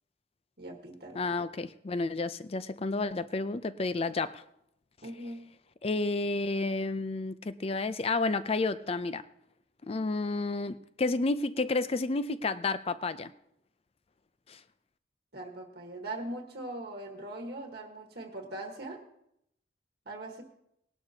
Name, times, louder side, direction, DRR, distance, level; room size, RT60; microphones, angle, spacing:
voice 1, 0.6-1.3 5.0-5.4 15.3-19.0 20.1-20.4, right 2 dB, 60° right, 2 dB, 1.4 m, -41 dB
voice 2, 1.1-4.4 5.8-9.2 9.8-13.3 14.5-14.6, left 3 dB, 30° left, 13 dB, 0.4 m, -31 dB
18.5 x 11.5 x 2.8 m, 0.78 s
head